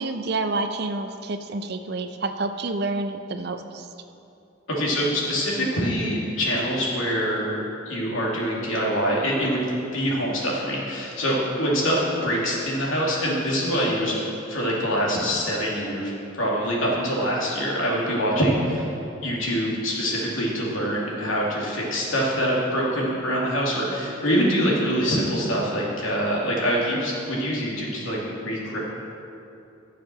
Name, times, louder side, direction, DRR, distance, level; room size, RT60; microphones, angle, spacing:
voice 1, 0.0-3.9, right 3 dB, 55° right, 8 dB, 0.6 m, -28 dB
voice 2, 4.7-7.5 7.9-9.7 9.9-14.2 14.5-18.9 19.2-28.8, equal, 90° left, -4 dB, 2.6 m, -24 dB
11.5 x 6.7 x 6.0 m, 2.7 s
head